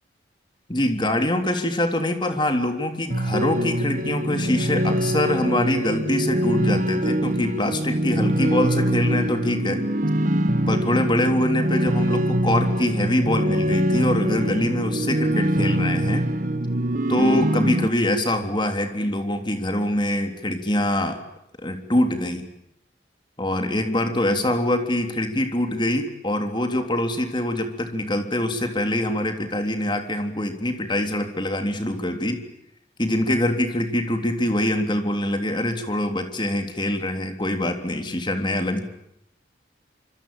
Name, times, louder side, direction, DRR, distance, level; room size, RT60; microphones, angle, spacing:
voice 1, 0.7-9.8 10.7-16.3 17.1-21.2 21.6-22.5 23.4-32.4 33.0-38.8, left 1 dB, 25° left, 6 dB, 3.4 m, -24 dB
sound 1, 3.1-17.9, equal, 45° right, 1.4 m, -23 dB
26.0 x 25.5 x 8.9 m, 0.79 s
head